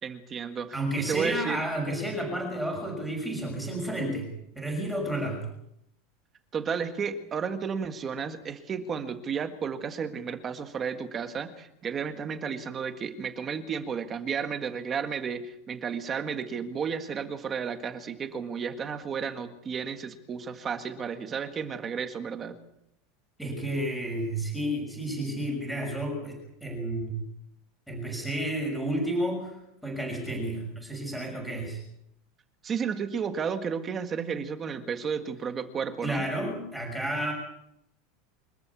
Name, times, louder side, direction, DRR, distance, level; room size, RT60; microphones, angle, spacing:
voice 1, 0.0-1.6 6.5-22.6 32.6-36.2, right 6 dB, 20° right, 8 dB, 1.7 m, -33 dB
voice 2, 0.7-4.3 4.5-5.4 23.4-27.1 27.9-29.6 29.8-31.8 36.0-37.3, right 1 dB, ahead, -1 dB, 6.4 m, -31 dB
25.5 x 14.0 x 8.4 m, 0.79 s
supercardioid pair, 180°, 0 cm